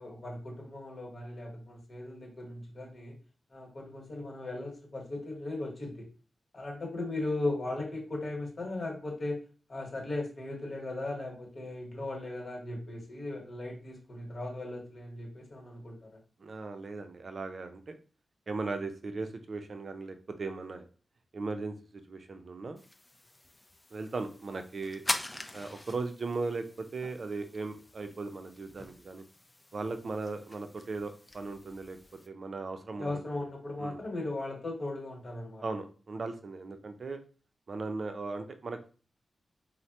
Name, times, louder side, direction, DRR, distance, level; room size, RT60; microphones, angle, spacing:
voice 1, 0.0-3.2 3.5-6.1 6.5-9.4 9.7-16.0 33.0-35.6, left 2 dB, 50° left, 0 dB, 1.1 m, -37 dB
voice 2, 16.4-18.0 18.5-20.8 21.3-22.8 23.9-25.0 25.5-29.2 29.7-32.0 32.3-33.4 33.8-34.0 35.6-37.2 37.7-38.9, right 3 dB, 55° right, 7 dB, 0.4 m, -38 dB
sound 1, 22.8-32.3, left 1 dB, 20° left, 0.3 m, -43 dB
3.1 x 2.0 x 2.8 m, 0.37 s
cardioid pair, 70°, 0 cm